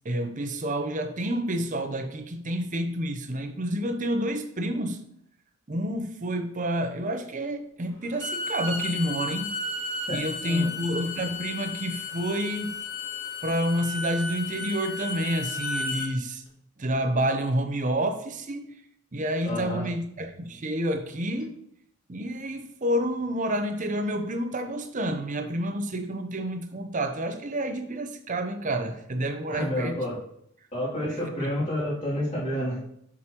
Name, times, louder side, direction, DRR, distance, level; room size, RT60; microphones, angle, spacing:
voice 1, 0.0-5.0 5.7-9.6 10.1-12.8 13.4-16.4 16.8-18.7 19.1-21.6 22.1-30.0 31.4-31.5, right 1 dB, 35° right, 6 dB, 0.7 m, -29 dB
Bowed string instrument, 8.0-16.1, left 3 dB, 80° left, 1.9 m, -33 dB
voice 2, 19.4-19.9 29.5-30.2 30.7-32.8, equal, 35° left, -7 dB, 2.7 m, -29 dB
7.5 x 6.2 x 2.9 m, 0.72 s
head